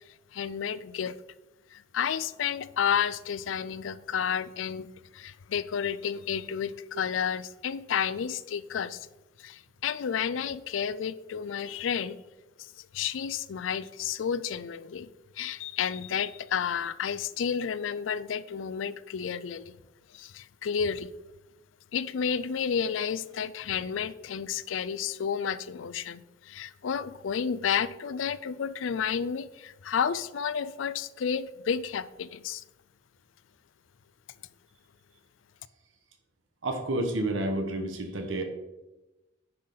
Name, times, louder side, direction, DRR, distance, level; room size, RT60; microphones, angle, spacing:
voice 1, 0.3-1.2 1.7-4.9 5.1-9.1 9.4-12.2 12.6-15.1 15.4-19.8 20.1-21.1 21.9-32.6, left 7 dB, 80° left, 16 dB, 0.4 m, -31 dB
voice 2, 36.6-38.4, right 1 dB, 85° right, 4 dB, 1.2 m, -30 dB
9.9 x 5.7 x 3.9 m, 1.0 s
head